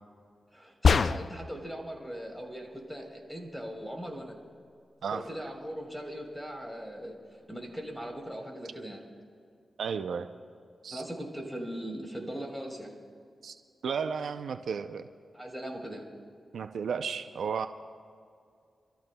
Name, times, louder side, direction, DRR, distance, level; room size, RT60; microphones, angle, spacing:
voice 1, 0.5-4.3 5.1-7.2 7.5-9.0 10.9-12.9 15.3-16.1, equal, ahead, 1 dB, 3.7 m, -39 dB
sound 1, 0.8-1.6, left 5 dB, 65° left, 0.3 m, -23 dB
voice 2, 9.8-10.3 10.8-11.0 13.4-13.6 13.8-15.1 16.5-17.7, right 6 dB, 80° right, 9 dB, 0.5 m, -33 dB
29.0 x 14.0 x 2.3 m, 2.3 s
cardioid pair, 55°, 0 cm